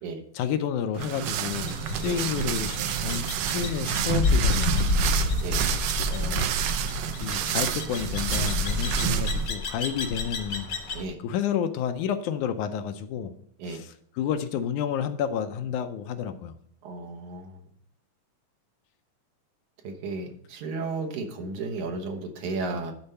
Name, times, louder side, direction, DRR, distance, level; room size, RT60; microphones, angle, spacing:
voice 1, 0.3-5.1 6.1-6.6 7.2-10.7 11.2-13.3 13.7-16.5, left 8 dB, 80° left, 8 dB, 1.9 m, -30 dB
sound 1, 0.9-9.5, right 9 dB, 90° right, 1.4 m, -28 dB
sound 2, 1.5-11.0, left 4 dB, 55° left, 1.2 m, -30 dB
voice 2, 16.8-17.6 19.8-22.9, right 3 dB, 70° right, 3 dB, 2.5 m, -33 dB
10.5 x 4.4 x 5.4 m, 0.68 s
omnidirectional pair, 3.7 m